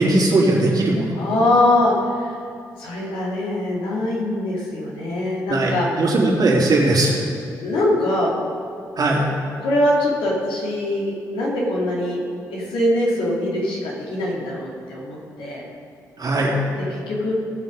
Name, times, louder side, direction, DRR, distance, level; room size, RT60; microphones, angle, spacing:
voice 1, 0.0-1.0 5.5-7.1 9.0-9.3 16.2-16.5, right 2 dB, 45° right, -3 dB, 3.1 m, -18 dB
voice 2, 1.2-2.4 2.8-6.1 7.6-8.3 9.6-12.2 12.5-15.6 16.8-17.3, left 1 dB, 70° left, -4 dB, 2.6 m, -22 dB
17.5 x 6.2 x 5.2 m, 2.5 s
hypercardioid pair, 40°, 9 cm